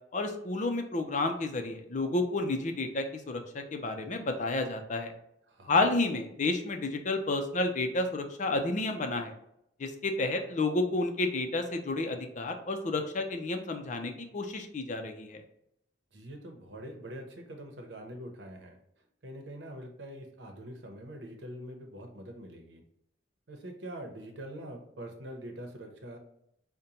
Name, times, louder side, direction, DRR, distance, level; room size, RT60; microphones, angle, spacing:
voice 1, 0.1-5.1 5.7-9.3 9.8-15.4, left 2 dB, 45° left, 5 dB, 0.5 m, -31 dB
voice 2, 5.5-6.0 16.1-22.8 23.5-26.2, right 1 dB, 80° right, 3 dB, 0.8 m, -44 dB
5.1 x 2.2 x 2.8 m, 0.76 s
head